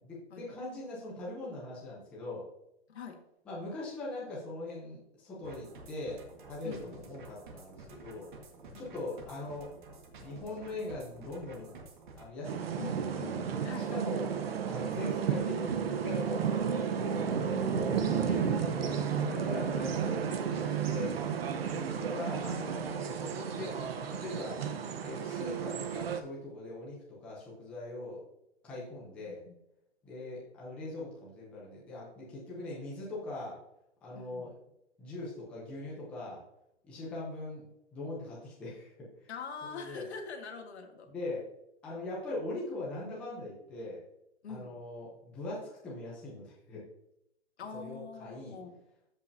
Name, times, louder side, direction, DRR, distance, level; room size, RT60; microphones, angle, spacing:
voice 1, 0.0-2.5 3.5-6.2 6.5-8.3 8.7-9.7 10.2-11.8 12.2-13.2 13.8-14.3 14.7-17.2 18.0-20.2 20.6-21.2 21.7-23.8 24.1-24.6 25.0-28.2 28.6-29.4 30.0-33.6 34.0-34.5 35.0-36.4 36.8-39.3 39.7-40.1 41.1-41.5 41.8-44.0 44.5-46.8 47.7-48.6, left 2 dB, 5° left, -6 dB, 0.6 m, -41 dB
voice 2, 2.9-3.2 6.6-7.0 8.7-9.1 12.8-14.0 17.5-18.4 21.5-21.9 29.2-29.6 34.2-34.5 39.3-41.1 44.4-44.8 47.6-48.8, left 5 dB, 75° left, 4 dB, 1.8 m, -44 dB
sound 1, 5.4-12.3, right 3 dB, 45° right, 1.7 m, -51 dB
sound 2, 12.4-26.2, right 7 dB, 60° right, 1.0 m, -32 dB
13.5 x 5.5 x 2.7 m, 0.81 s
hypercardioid pair, 175°, 33 cm